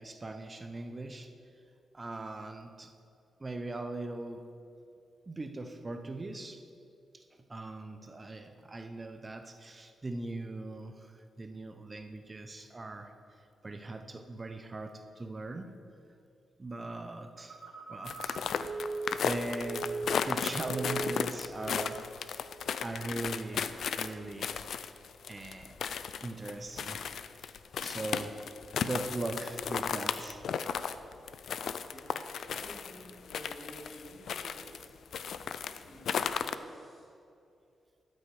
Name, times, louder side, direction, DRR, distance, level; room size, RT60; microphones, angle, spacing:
voice 1, 0.0-1.3 1.9-2.9 3.4-4.5 5.3-6.6 7.1-7.2 7.5-13.1 13.6-15.8 16.6-17.6 17.9-18.9 19.2-19.9 20.2-22.5 22.8-24.6 25.3-25.8 26.2-27.5 27.8-28.4 28.8-30.4, right 2 dB, 30° right, 7 dB, 0.6 m, -40 dB
Telephone, 17.4-20.4 20.7-21.3 21.7-22.0, right 3 dB, 45° right, 1.4 m, -39 dB
sound 1, 18.1-34.9 35.1-36.5, left 7 dB, 75° left, 0.4 m, -35 dB
voice 2, 31.8-37.1, equal, 25° left, -4 dB, 2.6 m, -52 dB
12.5 x 6.3 x 4.8 m, 2.6 s
cardioid pair, 80°, 0 cm